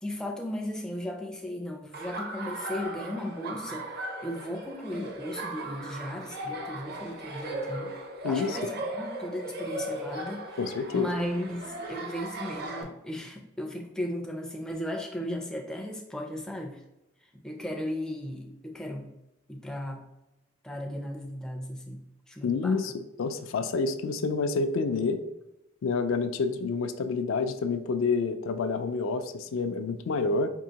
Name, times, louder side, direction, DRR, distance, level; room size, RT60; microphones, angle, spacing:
voice 1, 0.0-3.9 4.2-7.9 8.2-10.5 10.9-16.8 17.4-19.1 19.5-20.1 20.6-22.8, left 1 dB, 5° left, 1 dB, 0.3 m, -36 dB
Laughter, 1.9-12.8, right 1 dB, 50° right, 0.6 m, -37 dB
voice 2, 8.2-8.7 10.6-11.1 22.4-22.9 23.2-25.2 25.8-30.5, left 4 dB, 75° left, 9 dB, 0.3 m, -28 dB
4.5 x 2.7 x 2.8 m, 0.92 s
head